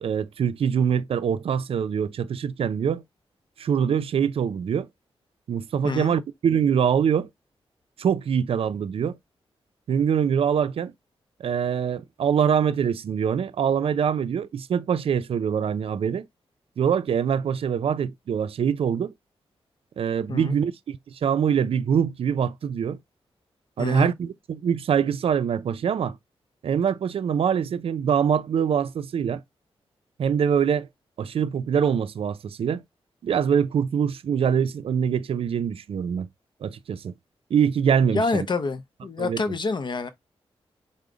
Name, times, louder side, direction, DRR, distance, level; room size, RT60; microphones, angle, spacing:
voice 1, 0.0-3.0 3.6-4.9 5.5-7.3 8.0-9.2 9.9-10.9 11.4-16.3 16.8-19.1 20.0-23.0 23.8-26.1 26.6-29.4 30.2-30.9 31.2-32.8 33.2-36.3 36.6-37.1 37.5-38.5 39.2-39.5, right 7 dB, 65° right, 0.4 m, -24 dB
voice 2, 5.8-6.2 20.3-20.6 23.8-24.1 38.1-40.1, left 3 dB, 45° left, 0.6 m, -27 dB
4.8 x 2.1 x 3.8 m
cardioid pair, 85°, 10 cm